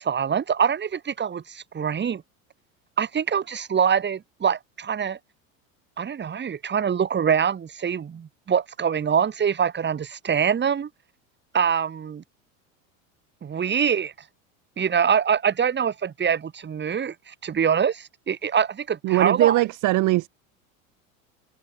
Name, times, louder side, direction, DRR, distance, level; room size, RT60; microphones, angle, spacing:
voice 1, 0.0-2.2 3.0-5.2 6.0-10.9 11.5-12.2 13.4-14.1 14.8-19.6, right 7 dB, 25° right, 2.3 m, -24 dB
voice 2, 19.0-20.3, right 19 dB, 45° right, 1.1 m, -20 dB
hypercardioid pair, 95°, 41 cm